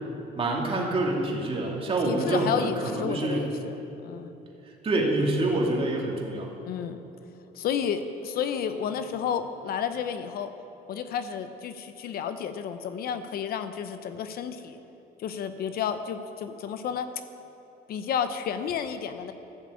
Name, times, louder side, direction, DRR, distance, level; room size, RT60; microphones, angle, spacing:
voice 1, 0.3-3.4 4.8-6.5, right 2 dB, 35° right, -1 dB, 2.5 m, -26 dB
voice 2, 2.0-3.7 4.0-4.3 6.7-7.0 7.5-10.5 10.9-14.8 15.2-17.1 17.9-19.3, left 8 dB, 65° left, 9 dB, 0.8 m, -31 dB
13.5 x 7.4 x 8.4 m, 2.9 s
cardioid pair, 110°, 17 cm